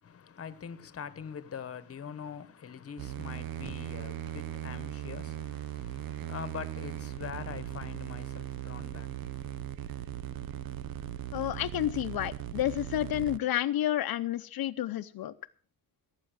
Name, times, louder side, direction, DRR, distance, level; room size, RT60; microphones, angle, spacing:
voice 1, 0.0-9.6, left 7 dB, 40° left, 1.1 m, -43 dB
sound 1, 3.0-13.4, right 12 dB, 75° right, 0.9 m, -38 dB
voice 2, 11.3-15.3, left 12 dB, 75° left, 0.7 m, -30 dB
17.0 x 8.5 x 6.2 m
wide cardioid pair, 140°, 36 cm